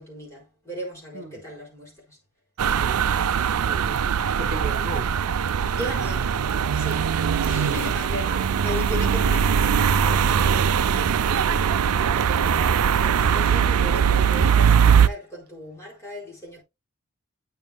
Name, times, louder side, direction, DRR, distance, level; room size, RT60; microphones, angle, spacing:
voice 1, 0.0-2.2 5.8-16.6, equal, 15° left, 4.5 m, -37 dB
sound 1, 2.6-15.1, right 7 dB, 90° right, 0.5 m, -21 dB
voice 2, 2.7-3.3 3.6-4.1 4.4-5.1 7.9-8.4, right 3 dB, 45° right, 1.8 m, -36 dB
9.5 x 6.9 x 2.2 m
head